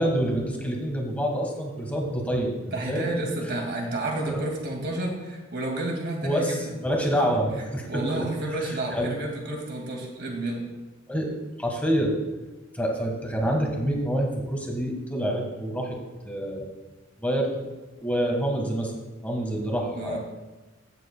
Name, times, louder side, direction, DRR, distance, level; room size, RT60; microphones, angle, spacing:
voice 1, 0.0-3.1 4.3-4.4 6.2-6.6 6.8-8.3 8.9-9.1 11.1-12.2 12.7-16.0 16.2-16.7 17.2-17.7 18.0-18.9 19.2-20.2, equal, 5° left, 0 dB, 1.5 m, -27 dB
voice 2, 2.7-6.7 7.8-10.7 19.9-20.2, right 2 dB, 55° right, 0 dB, 2.1 m, -31 dB
15.0 x 7.7 x 2.3 m, 1.2 s
head